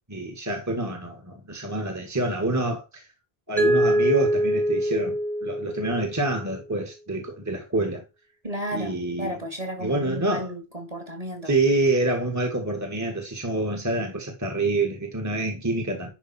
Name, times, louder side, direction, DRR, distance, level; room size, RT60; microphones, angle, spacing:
voice 1, 0.1-3.1 3.5-8.0 8.7-9.4 9.8-10.5 11.4-16.1, right 2 dB, 15° right, 1.6 m, -27 dB
Mallet percussion, 3.6-6.5, equal, ahead, 1.0 m, -24 dB
voice 2, 8.4-11.5, equal, 35° right, 2.5 m, -33 dB
11.0 x 5.0 x 4.3 m
omnidirectional pair, 1.1 m